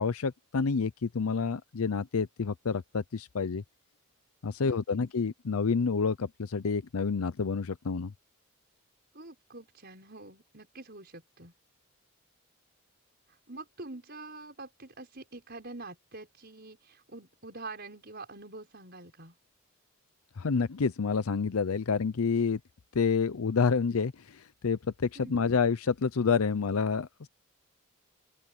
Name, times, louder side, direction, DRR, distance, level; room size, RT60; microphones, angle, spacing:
voice 1, 0.0-3.6 4.4-8.1 20.4-22.6 22.9-27.3, left 5 dB, 90° left, 0.6 m, -28 dB
voice 2, 4.6-5.0 9.1-11.5 13.3-19.4 25.1-25.4, right 3 dB, 50° right, 6.5 m, -46 dB
open air
head